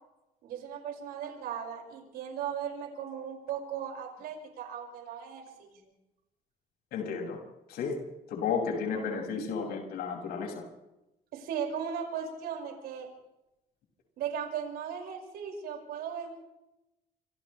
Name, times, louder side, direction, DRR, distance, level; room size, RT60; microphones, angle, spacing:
voice 1, 0.4-5.8 9.0-9.4 11.3-13.1 14.2-16.3, right 8 dB, 80° right, 1 dB, 6.2 m, -37 dB
voice 2, 6.9-7.4 7.7-8.0 8.3-10.6, left 6 dB, 80° left, 0 dB, 6.9 m, -33 dB
29.5 x 26.5 x 3.4 m, 0.93 s
cardioid pair, 120°, 16 cm